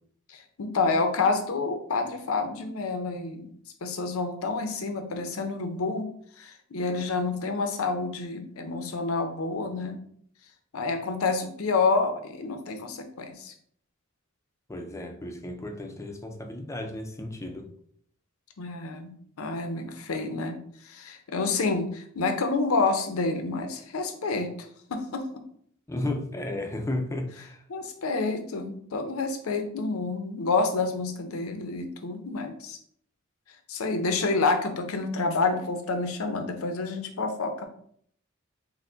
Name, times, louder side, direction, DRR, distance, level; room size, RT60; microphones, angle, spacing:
voice 1, 0.3-3.5 3.8-10.0 10.7-13.5 18.6-24.5 24.9-25.4 27.7-32.8 33.7-37.7, left 3 dB, 80° left, 0.6 m, -28 dB
voice 2, 14.7-17.7 25.9-27.6, left 1 dB, 15° left, 0.4 m, -33 dB
4.4 x 2.1 x 3.8 m
head